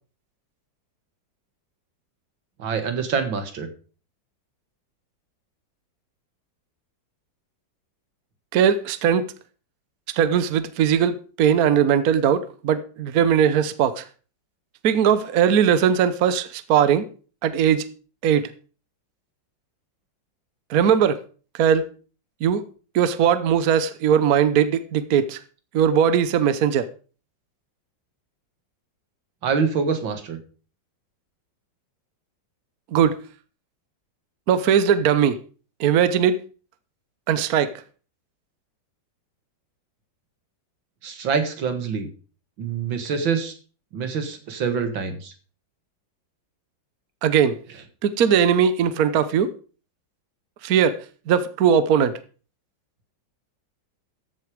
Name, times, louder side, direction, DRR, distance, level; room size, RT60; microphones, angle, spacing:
voice 1, 2.6-3.7 29.4-30.4 41.0-42.1 42.6-43.5 43.9-45.3, right 6 dB, 85° right, 2.4 m, -25 dB
voice 2, 8.5-9.3 10.1-14.1 14.8-17.1 17.4-17.9 18.2-18.5 20.7-21.2 21.5-21.9 22.4-22.6 22.9-25.4 25.7-26.9 32.9-33.2 34.5-35.4 35.8-36.4 37.3-37.7 47.2-47.6 48.0-49.5 50.6-51.0 51.3-52.1, right 8 dB, 60° right, 1.2 m, -19 dB
14.0 x 7.9 x 5.0 m
omnidirectional pair, 2.0 m